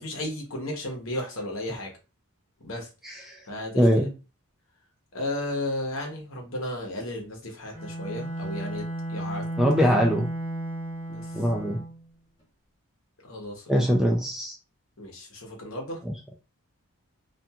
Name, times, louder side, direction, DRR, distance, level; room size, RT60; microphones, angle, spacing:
voice 1, 0.0-1.9 2.6-2.9 3.5-4.1 5.1-9.5 9.8-9.9 11.1-11.3 13.2-13.7 15.0-16.0, left 1 dB, 65° left, 1 dB, 0.9 m, -34 dB
voice 2, 3.0-3.4 3.7-4.1 9.6-10.3 11.3-11.8 13.7-14.5 16.1-16.2, equal, ahead, 0 dB, 0.3 m, -22 dB
Bowed string instrument, 7.7-12.1, right 1 dB, 25° left, 1.0 m, -34 dB
2.7 x 2.5 x 2.3 m, 0.31 s
head